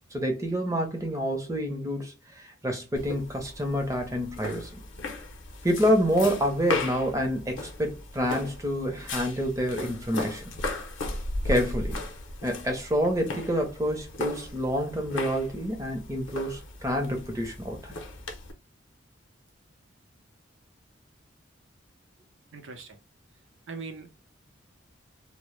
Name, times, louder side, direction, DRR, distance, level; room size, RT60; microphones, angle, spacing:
voice 1, 0.1-2.1 2.6-4.7 5.6-10.4 11.4-12.0 12.4-17.9, equal, 15° right, 0.6 m, -27 dB
sound 1, 3.0-18.5, left 2 dB, 65° left, 0.5 m, -37 dB
voice 2, 22.5-23.0 23.7-24.1, right 4 dB, 70° right, 0.6 m, -40 dB
2.0 x 2.0 x 3.0 m
head